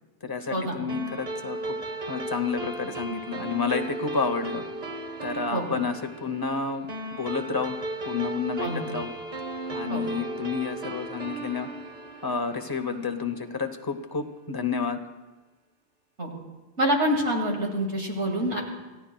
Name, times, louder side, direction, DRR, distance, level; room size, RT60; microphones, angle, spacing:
voice 1, 0.2-1.8 2.1-4.7 5.2-6.9 7.1-7.8 8.0-9.1 9.7-11.7 12.2-15.0, left 5 dB, 20° left, 6 dB, 0.8 m, -30 dB
sound 1, 0.9-13.6, right 2 dB, 40° right, 0.9 m, -36 dB
voice 2, 16.8-18.6, equal, 85° right, 0 dB, 2.5 m, -26 dB
28.0 x 14.5 x 2.3 m, 1.2 s
omnidirectional pair, 1.2 m